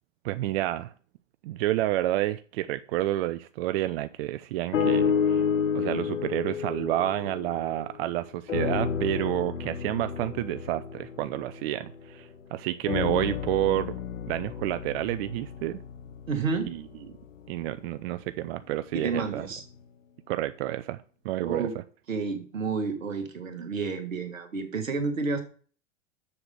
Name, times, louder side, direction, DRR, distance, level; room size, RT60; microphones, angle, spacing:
voice 1, 0.2-0.9 1.4-5.4 5.7-13.9 14.3-15.8 16.7-16.8 17.5-19.5 20.3-21.7, right 15 dB, 50° right, 0.5 m, -29 dB
sound 1, 4.7-8.1 8.5-12.2 12.9-17.1 17.7-17.8, left 7 dB, 75° left, 1.0 m, -30 dB
voice 2, 16.3-16.7 18.9-19.6 21.4-21.8 22.1-25.4, right 4 dB, 80° right, 1.8 m, -30 dB
7.0 x 6.8 x 4.9 m
figure-of-eight pair, 90°, 39 cm